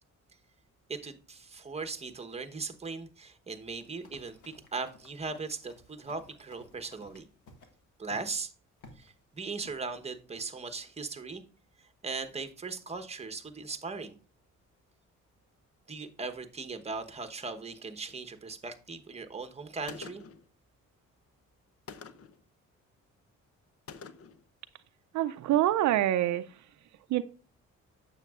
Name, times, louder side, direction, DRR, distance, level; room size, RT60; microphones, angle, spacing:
voice 1, 0.9-7.3 8.0-8.5 9.0-11.4 11.8-14.1 15.9-20.2, right 4 dB, 20° right, 1.0 m, -39 dB
Run, 3.8-7.7 8.1-8.3 8.8-9.1 9.6-9.8, left 3 dB, 80° left, 1.7 m, -56 dB
Gunshot gunfire, 19.9-20.5 21.9-22.4 23.9-24.4, left 5 dB, 50° left, 0.7 m, -46 dB
voice 2, 25.1-26.7 27.1-27.2, right 13 dB, 70° right, 0.5 m, -26 dB
9.0 x 7.1 x 2.4 m
cardioid pair, 90°, 30 cm